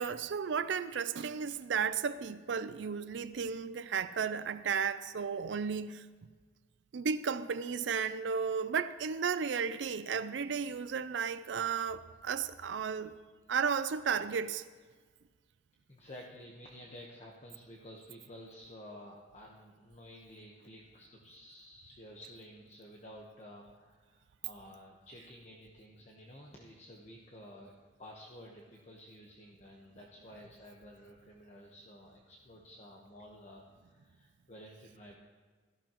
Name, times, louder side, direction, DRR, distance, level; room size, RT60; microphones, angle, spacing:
voice 1, 0.0-6.1 6.9-13.1 13.5-14.6, right 6 dB, 85° right, 0.5 m, -34 dB
voice 2, 15.9-27.7 28.0-35.2, equal, 40° left, 1.1 m, -52 dB
17.0 x 14.0 x 3.0 m
head